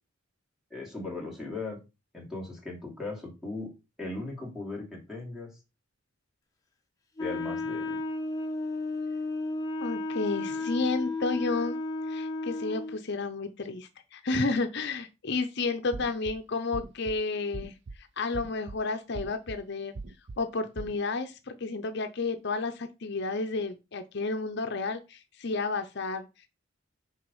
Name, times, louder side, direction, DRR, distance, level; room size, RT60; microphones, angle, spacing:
voice 1, 0.7-1.8 2.1-3.7 4.0-5.6 7.2-8.0, left 3 dB, ahead, -2 dB, 3.0 m, -38 dB
Wind instrument woodwind instrument, 7.2-13.0, left 3 dB, 15° left, 1.3 m, -33 dB
voice 2, 9.8-11.8 12.1-19.9 20.4-26.5, left 3 dB, 55° left, 7 dB, 0.7 m, -31 dB
sound 1, 15.9-16.3 16.7-17.2 17.5-18.0 18.3-18.8 19.1-19.6 20.0-20.4 20.8-21.0, right 3 dB, 55° right, 0.5 m, -40 dB
6.4 x 4.9 x 5.4 m, 0.27 s
head